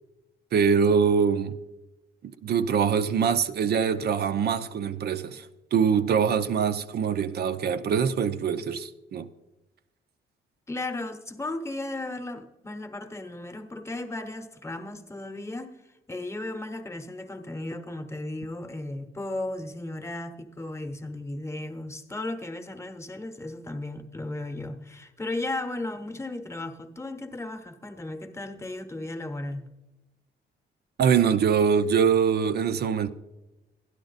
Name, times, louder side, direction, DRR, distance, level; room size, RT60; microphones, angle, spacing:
voice 1, 0.5-1.6 2.4-9.3 31.0-33.1, right 7 dB, 55° right, 0.6 m, -23 dB
voice 2, 10.7-15.7 16.1-29.7, left 2 dB, 15° left, 0.9 m, -35 dB
12.0 x 10.5 x 4.0 m
cardioid pair, 90°, 20 cm